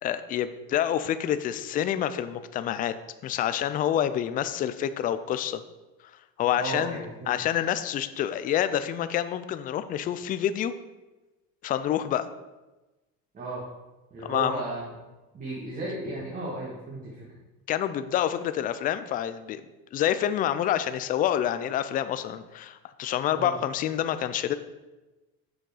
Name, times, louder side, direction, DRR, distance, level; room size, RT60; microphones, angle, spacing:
voice 1, 0.0-2.9 3.2-5.6 6.4-7.0 7.3-10.7 11.6-12.3 14.2-14.6 17.7-19.6 19.9-24.5, left 10 dB, 30° left, 12 dB, 0.4 m, -27 dB
voice 2, 6.5-7.3 13.3-13.7 14.1-14.8 15.3-17.3 23.3-23.6, right 2 dB, 25° right, -5 dB, 1.6 m, -34 dB
7.0 x 6.3 x 4.8 m, 1.1 s
cardioid pair, 145°, 30 cm